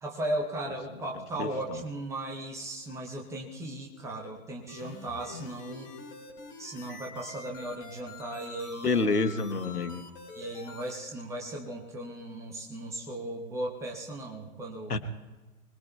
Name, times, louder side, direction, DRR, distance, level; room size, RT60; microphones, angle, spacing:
voice 1, 0.0-5.9 6.6-9.0 10.3-14.9, right 1 dB, 5° right, 0 dB, 0.6 m, -36 dB
voice 2, 1.4-1.8 8.8-10.0 14.9-15.0, left 3 dB, 80° left, 9 dB, 1.2 m, -28 dB
sound 1, 4.7-11.0, left 5 dB, 30° left, 4.2 m, -46 dB
25.0 x 20.5 x 2.3 m, 1.2 s
figure-of-eight pair, 120°, 45 cm